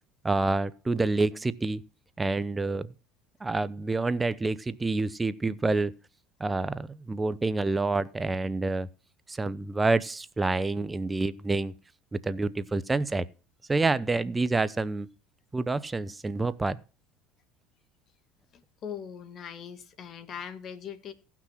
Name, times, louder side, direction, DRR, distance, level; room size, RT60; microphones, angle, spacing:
voice 1, 0.2-1.8 2.2-2.9 3.4-6.0 6.4-8.9 9.3-11.7 12.1-13.2 13.7-15.1 15.5-16.8, right 3 dB, 15° right, 0.8 m, -28 dB
voice 2, 18.5-21.1, left 8 dB, 45° left, 1.8 m, -41 dB
16.5 x 6.2 x 5.8 m
supercardioid pair, 90°, 0 cm